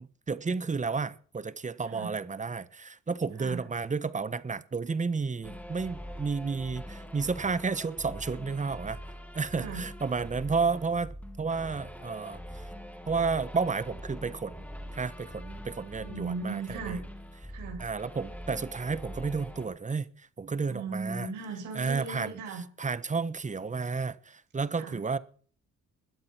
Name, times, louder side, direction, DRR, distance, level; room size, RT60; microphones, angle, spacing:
voice 1, 0.0-9.0 9.3-12.7 13.1-14.6 14.9-17.0 17.8-21.3 21.7-22.3 22.8-25.2, right 4 dB, 25° right, 1.2 m, -32 dB
voice 2, 1.8-2.2 3.4-3.6 9.5-9.8 16.0-17.0 17.5-17.9 20.7-22.6 24.7-25.0, right 4 dB, 90° right, 6.8 m, -37 dB
sound 1, 5.4-19.7, equal, 5° left, 4.2 m, -43 dB
21.5 x 7.7 x 5.8 m
cardioid pair, 90°, 30 cm